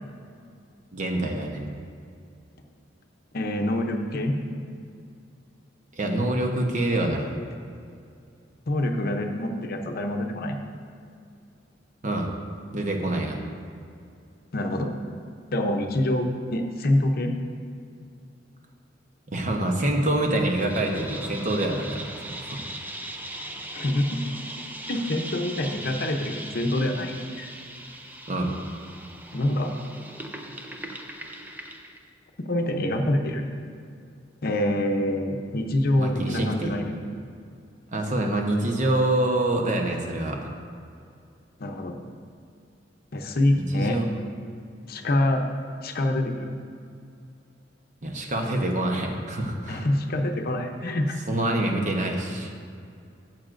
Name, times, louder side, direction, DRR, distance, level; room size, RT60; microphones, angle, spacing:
voice 1, 0.9-1.6 5.9-7.3 12.0-12.3 12.7-13.4 19.3-22.6 28.3-28.6 36.0-36.7 37.9-40.5 43.5-44.0 48.0-49.9 51.3-52.5, right 1 dB, 40° right, 2 dB, 1.0 m, -26 dB
voice 2, 3.3-4.4 8.7-10.6 14.5-14.9 15.5-17.3 23.7-24.2 24.9-27.5 29.3-29.7 32.4-33.4 34.4-36.9 41.6-42.0 43.1-44.0 44.9-45.4 45.8-46.5 49.7-51.2, left 1 dB, 55° left, 4 dB, 0.7 m, -26 dB
sound 1, 20.5-32.0, right 1 dB, 10° right, 0.5 m, -39 dB
14.0 x 7.6 x 2.6 m, 2.4 s
head